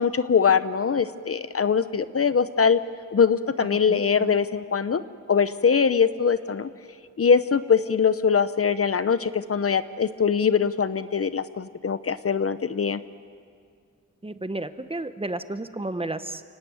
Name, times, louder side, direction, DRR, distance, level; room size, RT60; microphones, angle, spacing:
voice 1, 0.0-2.8 3.1-5.0 5.3-6.7 7.2-13.0, left 6 dB, 50° left, 14 dB, 0.8 m, -22 dB
voice 2, 3.6-4.4 14.2-16.4, right 2 dB, 20° right, 11 dB, 0.9 m, -33 dB
29.5 x 18.0 x 9.2 m, 2.2 s
wide cardioid pair, 130°, 30 cm